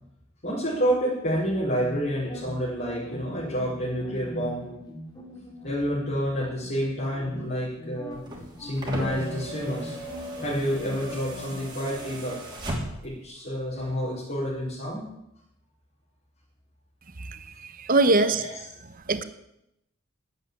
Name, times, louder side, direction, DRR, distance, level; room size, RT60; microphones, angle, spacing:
voice 1, 0.4-4.7 5.6-8.2 8.6-9.9 10.4-12.4 13.0-15.1 18.1-18.6, equal, 45° left, -8 dB, 4.5 m, -29 dB
sound 1, 1.8-11.6, equal, 20° left, 2.4 m, -42 dB
sound 2, 8.1-13.2 14.5-14.6, right 1 dB, 20° right, 3.1 m, -36 dB
voice 2, 17.8-18.4 19.1-19.2, right 2 dB, 45° right, 11 dB, 0.9 m, -21 dB
10.5 x 8.3 x 9.9 m, 0.82 s
head